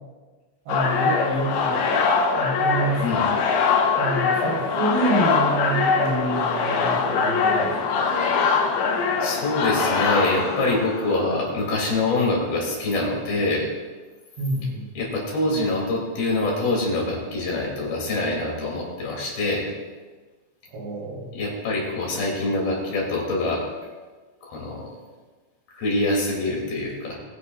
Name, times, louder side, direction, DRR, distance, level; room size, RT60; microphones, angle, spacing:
sound 1, 0.7-11.2, left 5 dB, 75° left, 3.6 m, -22 dB
voice 1, 0.7-1.9 2.4-3.3 4.0-8.0 14.4-14.8 20.7-21.4, right 1 dB, 75° right, -5 dB, 5.9 m, -27 dB
voice 2, 9.2-13.7 15.0-19.7 21.3-23.6 24.4-24.9 25.7-27.2, left 2 dB, 55° left, -3 dB, 4.3 m, -25 dB
sound 2, 9.7-12.5, left 1 dB, 25° left, 3.0 m, -36 dB
22.0 x 9.8 x 2.4 m, 1.3 s
omnidirectional pair, 5.4 m